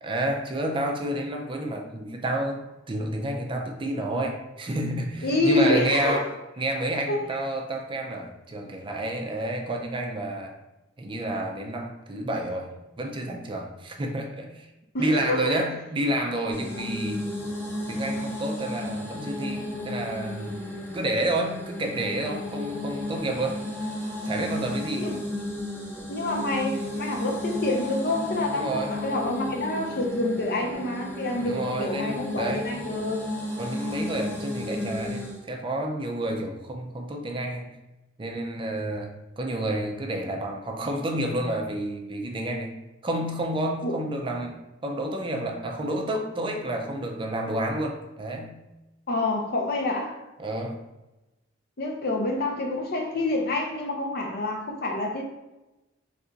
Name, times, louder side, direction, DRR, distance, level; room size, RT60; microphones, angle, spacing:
voice 1, 0.0-6.3 6.6-10.5 11.0-12.7 13.0-14.7 15.0-17.3 17.9-20.6 20.9-23.9 24.2-25.1 28.5-29.0 31.4-32.7 33.6-37.7 38.2-42.7 43.0-44.6 44.8-48.6 50.4-50.8, right 1 dB, 25° right, 2 dB, 0.4 m, -30 dB
voice 2, 5.2-6.2 7.1-7.4 14.9-15.5 20.6-20.7 25.0-25.2 26.1-33.2 43.8-43.9 49.1-50.2 51.8-55.2, left 2 dB, 55° left, 1 dB, 0.6 m, -27 dB
sound 1, 16.5-35.4, left 1 dB, 10° left, 0.7 m, -33 dB
3.3 x 2.5 x 3.9 m, 1.0 s
head